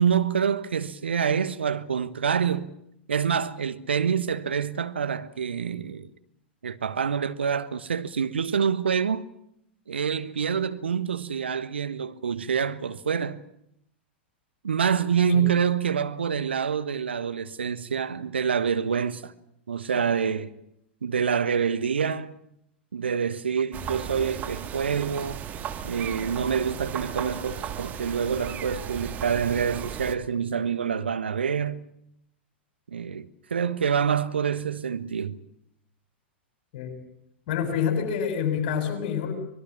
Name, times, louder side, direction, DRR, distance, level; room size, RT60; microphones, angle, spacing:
voice 1, 0.0-2.7 3.1-6.1 6.6-9.2 9.9-13.4 14.6-19.3 19.7-20.5 21.0-22.4 22.9-25.4 25.8-31.9 32.9-35.4, right 7 dB, 70° right, 1.3 m, -26 dB
sound 1, 23.7-30.2, right 9 dB, 25° right, 1.8 m, -35 dB
voice 2, 37.5-39.3, left 7 dB, 45° left, 7.0 m, -27 dB
25.0 x 21.5 x 7.4 m
figure-of-eight pair, 100°, 6 cm